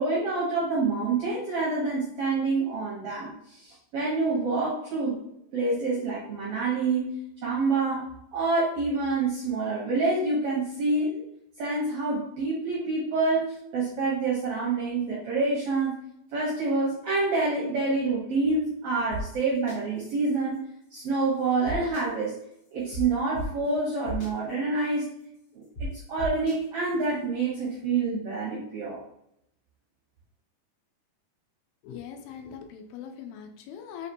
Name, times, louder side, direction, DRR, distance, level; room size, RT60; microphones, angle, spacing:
voice 1, 0.0-3.3 3.6-5.2 5.5-7.1 7.4-11.2 11.6-15.9 16.3-20.6 20.9-22.4 22.7-25.1 25.5-25.6 26.1-29.0, right 3 dB, 80° right, -5 dB, 1.3 m, -27 dB
sound 1, 19.1-19.2 19.7-19.8 21.6-22.0 22.9-23.0 23.3-23.4 24.1-24.3 25.8-25.9 26.2-26.5, right 1 dB, 60° left, 1.6 m, -33 dB
voice 2, 31.8-34.1, left 8 dB, 85° left, 5 dB, 2.4 m, -41 dB
5.8 x 2.7 x 2.6 m, 0.75 s
omnidirectional pair, 4.1 m